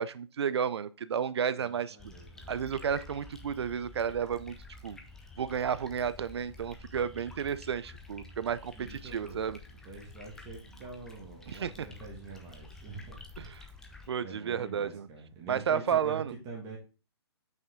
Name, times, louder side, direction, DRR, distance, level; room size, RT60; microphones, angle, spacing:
voice 1, 0.0-2.0 2.5-4.5 4.8-5.0 5.4-9.6 11.5-11.9 13.4-13.5 14.1-15.1 15.5-16.3, right 7 dB, 65° right, 0.6 m, -32 dB
voice 2, 1.5-2.6 8.8-9.4 9.8-13.5 14.2-16.8, right 4 dB, 20° right, 1.7 m, -45 dB
sound 1, 2.0-14.1, left 3 dB, 5° left, 0.6 m, -50 dB
5.7 x 5.4 x 3.7 m
hypercardioid pair, 150°, 15 cm